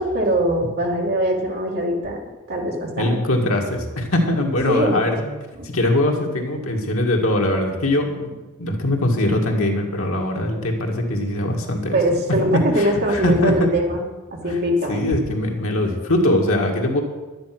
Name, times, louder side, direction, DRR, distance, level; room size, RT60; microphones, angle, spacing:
voice 1, 0.0-2.2 2.5-3.2 4.7-5.0 5.6-5.7 11.9-15.0, right 1 dB, 45° right, 0 dB, 2.5 m, -22 dB
voice 2, 3.0-5.4 5.6-12.0 12.5-13.7 14.5-14.6 14.9-17.0, left 1 dB, 70° left, 1 dB, 2.1 m, -21 dB
11.5 x 10.5 x 6.1 m, 1.2 s
head